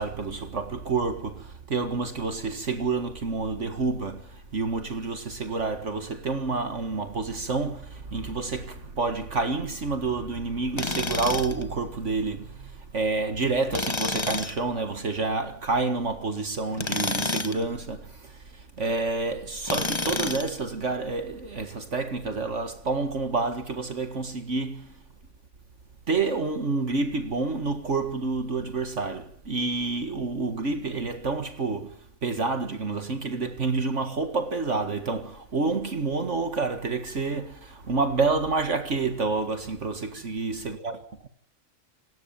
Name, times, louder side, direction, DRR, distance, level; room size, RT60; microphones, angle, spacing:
voice 1, 0.0-25.0 26.1-41.3, right 3 dB, 60° right, 2.1 m, -29 dB
Tools, 10.8-11.6 13.7-14.6 16.7-17.6 19.7-20.6, left 2 dB, 20° left, 1.4 m, -29 dB
28.0 x 19.5 x 7.2 m
omnidirectional pair, 1.4 m